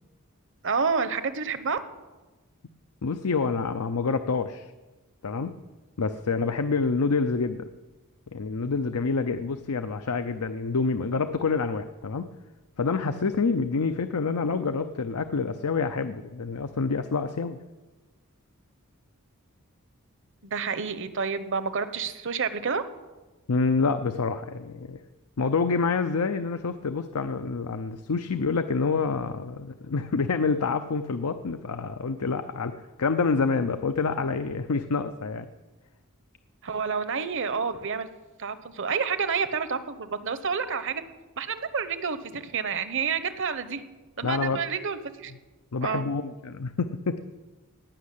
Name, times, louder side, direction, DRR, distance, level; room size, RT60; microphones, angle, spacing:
voice 1, 0.6-1.8 20.4-22.8 36.6-38.1 38.4-41.0 41.4-43.8 44.2-45.3 45.8-46.0, right 5 dB, 55° right, 12 dB, 1.0 m, -29 dB
voice 2, 3.0-4.7 5.2-5.6 6.0-7.7 8.3-12.3 12.8-17.6 23.5-25.0 25.4-32.7 33.0-35.5 44.2-44.6 45.7-47.2, left 4 dB, 80° left, 9 dB, 0.7 m, -27 dB
18.0 x 6.4 x 9.9 m, 1.2 s
head